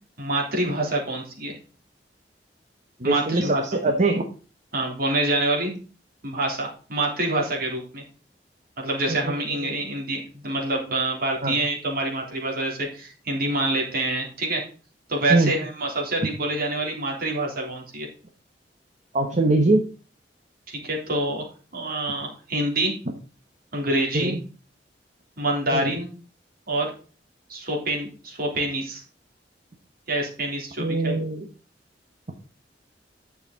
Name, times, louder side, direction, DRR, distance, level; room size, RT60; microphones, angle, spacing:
voice 1, 0.2-1.5 3.0-3.6 4.7-5.7 6.2-8.0 8.8-14.6 15.1-18.1 20.7-21.5 21.7-22.9 23.7-24.4 25.4-26.1 26.7-26.9 27.5-29.0 30.1-31.3, right 2 dB, 60° right, -1 dB, 3.7 m, -26 dB
voice 2, 3.0-4.2 9.1-9.8 11.4-11.5 15.3-15.5 19.1-19.8 24.1-24.4 25.7-26.0 30.8-31.5, right 2 dB, 45° right, 4 dB, 1.2 m, -23 dB
10.5 x 6.8 x 4.0 m, 0.37 s
head